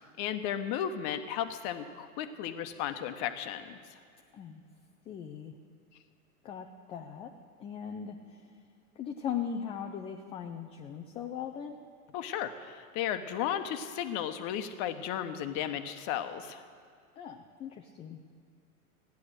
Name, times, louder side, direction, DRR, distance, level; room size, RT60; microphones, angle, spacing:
voice 1, 0.2-3.8 12.1-16.6, left 10 dB, 40° left, 9 dB, 1.0 m, -34 dB
voice 2, 5.1-5.5 6.4-7.3 7.6-8.5 9.0-11.8 17.2-18.2, left 8 dB, 15° left, 3 dB, 0.3 m, -39 dB
15.0 x 10.5 x 6.5 m, 2.2 s
hypercardioid pair, 105°, 45 cm